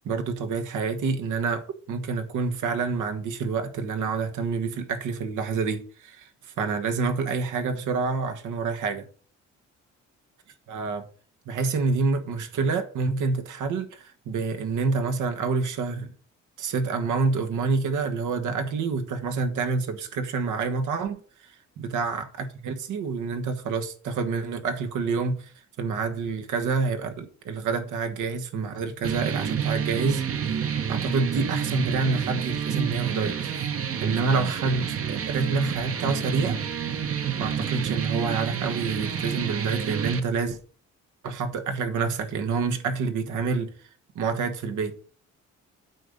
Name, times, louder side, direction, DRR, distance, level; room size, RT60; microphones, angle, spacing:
voice 1, 0.0-9.1 10.7-11.0 11.5-16.1 16.6-25.5 25.8-36.6 37.4-40.6 41.2-43.7 44.1-44.9, right 4 dB, 80° right, 1.5 m, -28 dB
sound 1, 29.0-40.2, right 8 dB, 50° right, 1.1 m, -29 dB
8.9 x 4.1 x 6.6 m
cardioid pair, 90°, 30 cm